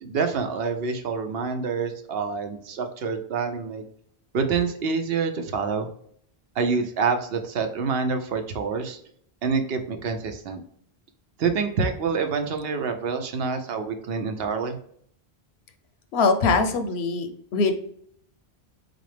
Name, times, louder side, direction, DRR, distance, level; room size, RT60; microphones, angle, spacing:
voice 1, 0.0-3.8 4.3-5.9 6.6-9.0 9.4-10.6 11.4-14.8, right 5 dB, 70° right, 6 dB, 0.9 m, -27 dB
voice 2, 16.1-17.7, left 4 dB, 85° left, 8 dB, 0.9 m, -22 dB
4.1 x 3.9 x 3.3 m, 0.64 s
omnidirectional pair, 1.1 m